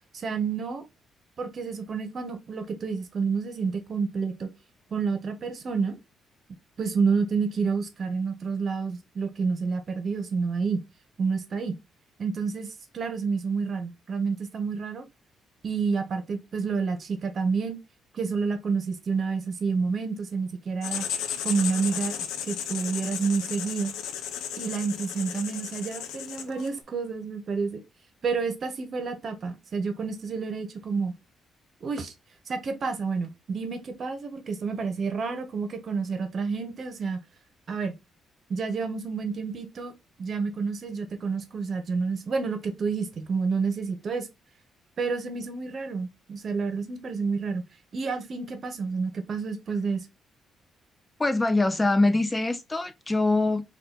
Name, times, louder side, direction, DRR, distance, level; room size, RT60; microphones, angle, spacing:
voice 1, 0.1-0.8 1.4-4.5 4.9-6.0 6.8-10.8 11.2-11.8 12.2-12.7 12.9-15.0 15.6-17.8 18.1-21.0 21.4-22.1 22.5-23.9 24.6-27.8 28.2-31.2 31.8-32.1 32.5-37.2 37.7-37.9 38.5-39.9 40.2-44.3 45.0-47.6 47.9-50.1, right 5 dB, 50° right, 1.0 m, -29 dB
Writing, 20.8-26.8, left 8 dB, 90° left, 0.6 m, -34 dB
voice 2, 51.2-53.6, left 2 dB, 15° left, 0.5 m, -23 dB
4.1 x 2.6 x 3.8 m
cardioid pair, 90°, 0 cm